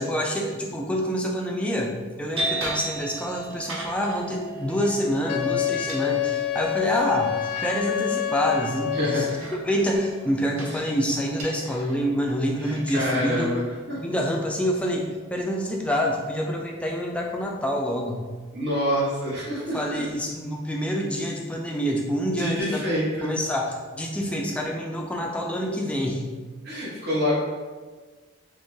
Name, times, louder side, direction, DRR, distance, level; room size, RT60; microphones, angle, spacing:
voice 1, 0.0-13.5 13.9-18.2 19.5-26.4, equal, 5° left, 0 dB, 0.3 m, -27 dB
sound 1, 1.2-13.2, right 1 dB, 85° right, 0.8 m, -44 dB
sound 2, 2.4-18.6, right 2 dB, 25° right, 0.7 m, -40 dB
Wind instrument woodwind instrument, 5.3-9.4, left 13 dB, 85° left, 0.3 m, -27 dB
voice 2, 8.9-9.3 10.7-10.8 12.6-14.0 18.5-19.8 22.4-23.3 26.6-27.4, equal, 50° right, -5 dB, 0.9 m, -26 dB
3.6 x 2.9 x 2.6 m, 1.4 s
head